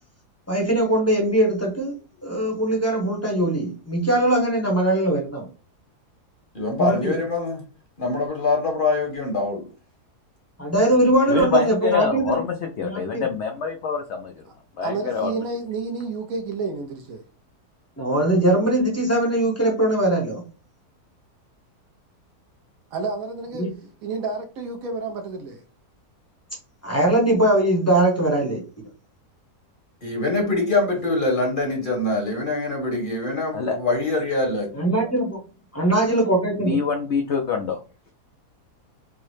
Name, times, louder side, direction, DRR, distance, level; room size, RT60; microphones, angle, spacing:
voice 1, 0.5-2.0 2.2-5.5 6.8-7.1 10.6-12.4 12.8-13.3 18.0-20.4 23.6-23.7 26.8-28.6 34.7-35.4 35.7-36.8, right 1 dB, 15° left, 0.6 m, -21 dB
voice 2, 6.5-7.6 8.0-9.7 30.0-34.7, left 2 dB, 40° left, 0.9 m, -24 dB
voice 3, 11.3-14.3 14.8-15.3 33.5-33.8 36.6-37.8, left 5 dB, 75° left, 0.6 m, -25 dB
voice 4, 14.8-17.2 22.9-23.7 24.0-25.6, right 4 dB, 70° right, 0.9 m, -30 dB
4.6 x 2.0 x 3.1 m
omnidirectional pair, 1.7 m